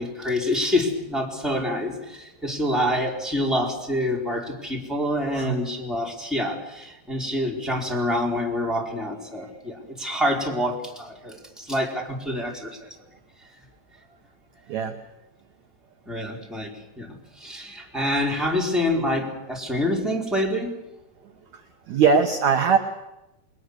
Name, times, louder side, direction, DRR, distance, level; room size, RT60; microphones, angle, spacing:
voice 1, 0.0-12.9 16.1-20.8, left 1 dB, ahead, -2 dB, 3.5 m, -27 dB
voice 2, 21.5-22.8, right 6 dB, 65° right, 5 dB, 1.8 m, -21 dB
28.5 x 21.0 x 6.7 m, 0.95 s
omnidirectional pair, 4.9 m